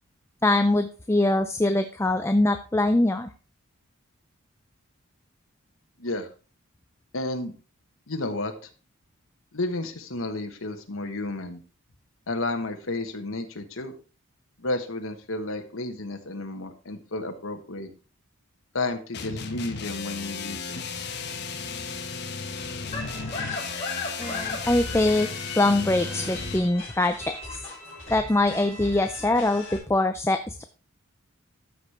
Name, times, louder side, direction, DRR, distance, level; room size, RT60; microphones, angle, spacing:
voice 1, 0.4-3.3 24.2-25.3 25.6-27.6 28.1-30.6, left 2 dB, 10° left, 8 dB, 0.4 m, -23 dB
voice 2, 6.0-6.3 7.1-7.5 8.1-8.5 9.5-11.6 12.3-13.9 14.6-17.9 18.7-20.8, left 2 dB, 75° left, 5 dB, 1.3 m, -32 dB
sound 1, 19.1-26.7, left 4 dB, 50° left, 1.0 m, -35 dB
sound 2, 22.9-29.8, left 3 dB, 30° left, 5.2 m, -36 dB
13.0 x 5.1 x 4.2 m, 0.35 s
head